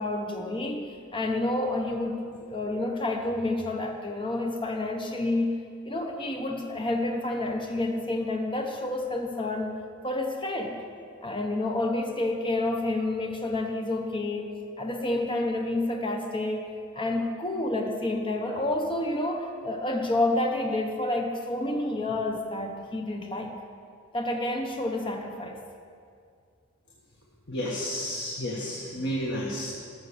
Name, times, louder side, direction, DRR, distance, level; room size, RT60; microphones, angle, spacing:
voice 1, 0.0-5.6 5.8-9.7 10.0-10.8 11.2-16.7 16.9-23.5 24.1-25.6, left 2 dB, 25° left, 2 dB, 0.9 m, -29 dB
voice 2, 27.5-29.7, equal, 55° left, -4 dB, 1.5 m, -31 dB
13.0 x 6.7 x 6.8 m, 2.3 s
head